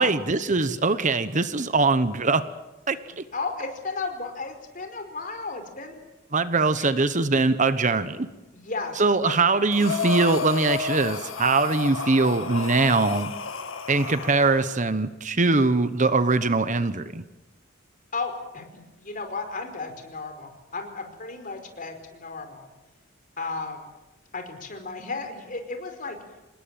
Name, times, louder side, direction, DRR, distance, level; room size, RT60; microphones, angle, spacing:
voice 1, 0.0-2.4 2.9-3.2 6.3-8.3 9.0-13.3 13.9-17.2, right 3 dB, 40° right, 12 dB, 1.1 m, -22 dB
voice 2, 3.3-6.0 6.8-6.9 8.5-9.3 18.1-22.7 23.4-23.9 24.3-26.2, left 3 dB, 40° left, 6 dB, 4.9 m, -34 dB
Breathing, 9.7-14.7, left 4 dB, 80° left, 2.0 m, -31 dB
27.5 x 20.0 x 9.0 m, 1.0 s
head